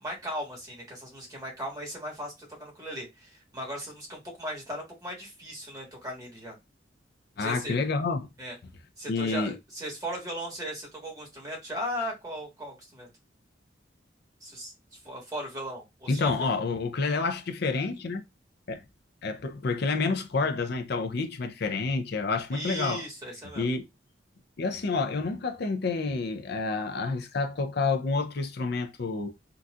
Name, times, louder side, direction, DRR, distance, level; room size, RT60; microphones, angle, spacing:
voice 1, 0.0-6.5 7.3-7.7 8.4-8.6 9.0-13.1 14.4-14.7 15.0-16.6 22.5-23.7, equal, 20° right, 1.4 m, -37 dB
voice 2, 7.4-8.3 9.1-9.6 16.1-18.2 18.7-18.8 19.2-23.0 23.6-23.8 24.6-29.3, left 4 dB, 60° left, 0.5 m, -29 dB
3.9 x 2.4 x 2.4 m
head